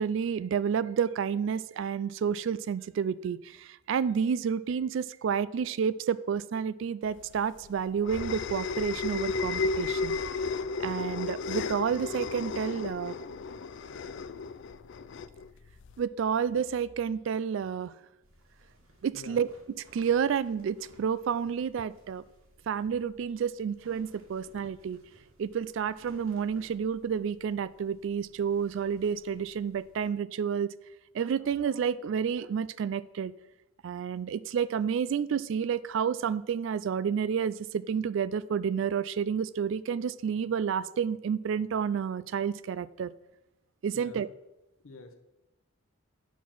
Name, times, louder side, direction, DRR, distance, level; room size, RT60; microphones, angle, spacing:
voice 1, 0.0-10.2 10.8-13.2 16.0-17.9 19.0-19.5 19.9-22.2 22.7-25.0 25.4-30.7 31.1-33.3 33.8-43.1 43.8-44.3, right 7 dB, 60° right, 18 dB, 0.3 m, -30 dB
sound 1, 7.2-16.0, left 4 dB, 60° left, 0.4 m, -34 dB
sound 2, 18.2-30.1, right 1 dB, 85° right, 2.0 m, -60 dB
voice 2, 44.8-45.1, left 3 dB, 75° left, 5 dB, 0.8 m, -47 dB
9.1 x 4.4 x 5.9 m, 0.94 s
head